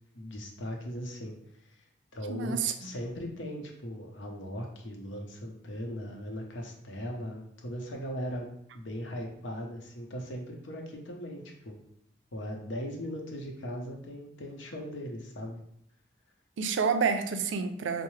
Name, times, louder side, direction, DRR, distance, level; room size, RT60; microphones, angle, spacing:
voice 1, 0.1-1.3 1.7-1.8 2.1-8.5 8.7-11.8 12.3-15.6, equal, 85° left, 1 dB, 0.7 m, -39 dB
voice 2, 2.3-2.9 16.6-18.0, right 5 dB, 80° right, 8 dB, 0.4 m, -29 dB
4.5 x 2.0 x 3.1 m, 0.71 s
head